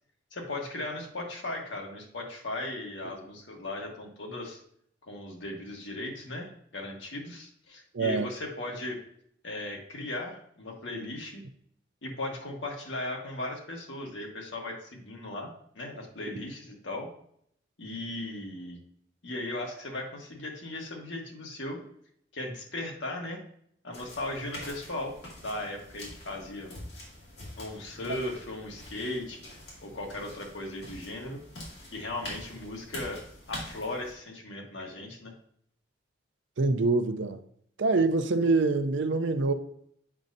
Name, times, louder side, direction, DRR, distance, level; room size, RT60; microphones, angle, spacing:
voice 1, 0.3-4.6 5.1-9.0 9.4-11.4 12.0-17.1 17.8-18.8 19.2-21.8 22.3-23.4 23.8-25.1 25.4-26.7 27.6-29.4 29.8-31.4 31.9-33.2 33.5-35.3, left 2 dB, 80° left, 0 dB, 1.4 m, -37 dB
voice 2, 7.9-8.3 36.6-37.4 37.8-39.5, right 3 dB, 75° right, 9 dB, 0.5 m, -25 dB
sound 1, 23.9-34.1, left 1 dB, 65° left, 2.2 m, -45 dB
7.3 x 5.3 x 2.6 m, 0.67 s
head